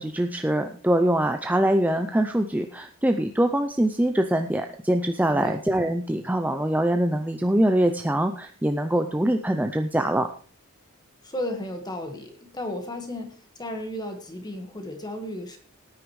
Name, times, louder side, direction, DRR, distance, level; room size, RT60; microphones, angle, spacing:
voice 1, 0.0-10.3, right 1 dB, 5° right, 5 dB, 0.5 m, -23 dB
voice 2, 11.2-15.6, left 1 dB, 20° left, 5 dB, 1.5 m, -34 dB
17.5 x 9.7 x 3.2 m, 0.41 s
head